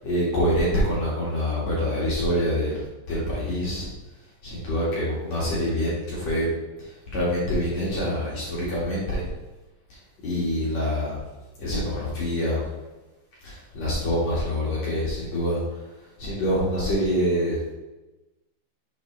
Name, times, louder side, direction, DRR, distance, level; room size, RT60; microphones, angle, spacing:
voice 1, 0.0-2.8 3.1-3.9 4.4-6.5 7.1-9.3 10.2-11.2 11.6-12.6 13.4-15.6 16.2-17.6, equal, 55° left, -7 dB, 2.1 m, -25 dB
7.1 x 6.5 x 3.3 m, 1.1 s
omnidirectional pair, 5.9 m